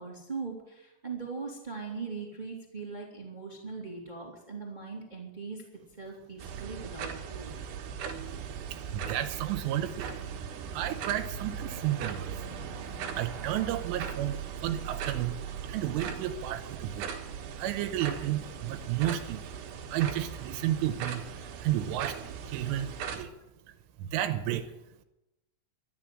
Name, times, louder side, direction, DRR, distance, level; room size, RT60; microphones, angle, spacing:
voice 1, 0.0-5.6 6.0-7.5, right 4 dB, 15° right, 0 dB, 1.6 m, -40 dB
sound 1, 6.4-23.2, right 7 dB, 65° right, 3.1 m, -39 dB
voice 2, 8.7-10.2 10.7-12.4 12.8-15.4 15.6-17.1 17.6-19.4 19.9-22.2 22.5-23.3 24.0-24.7, right 12 dB, 85° right, 8 dB, 3.4 m, -32 dB
13.0 x 11.5 x 7.6 m, 0.92 s
omnidirectional pair, 5.6 m